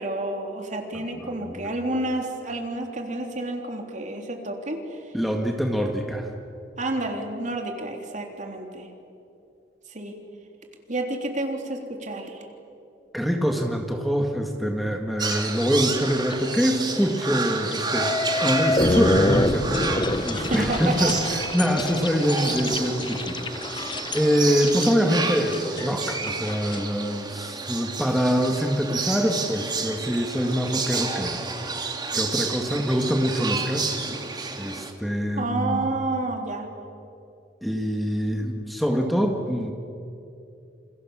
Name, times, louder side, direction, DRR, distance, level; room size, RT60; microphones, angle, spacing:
voice 1, 0.0-4.8 6.8-8.9 9.9-10.2 10.9-12.4 20.3-21.1 35.4-36.7, right 2 dB, 45° right, 3 dB, 3.5 m, -29 dB
voice 2, 1.1-1.7 5.1-6.3 13.1-23.5 24.1-31.4 32.1-33.8 34.6-35.9 37.6-39.7, equal, ahead, 2 dB, 1.9 m, -25 dB
sound 1, 15.2-34.9, right 4 dB, 25° right, 2.4 m, -30 dB
sound 2, 15.3-15.6 16.0-16.4 16.8-16.9 17.7-26.8, left 2 dB, 25° left, 1.0 m, -27 dB
28.5 x 28.0 x 7.4 m, 2.7 s
head